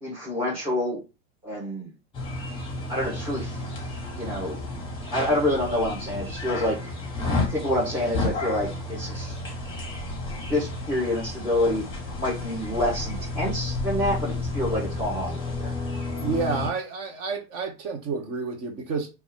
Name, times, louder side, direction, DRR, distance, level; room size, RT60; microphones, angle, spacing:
voice 1, 0.0-1.0 1.4-1.9 2.9-3.6 4.1-4.6 5.1-6.8 7.4-9.4 10.4-11.8 12.2-15.7, left 1 dB, 15° right, 1.5 m, -27 dB
sound 1, 2.1-16.7, left 2 dB, 10° left, 1.9 m, -31 dB
voice 2, 16.2-19.1, right 4 dB, 35° right, 1.2 m, -29 dB
4.3 x 3.0 x 3.7 m
supercardioid pair, 155°, 41 cm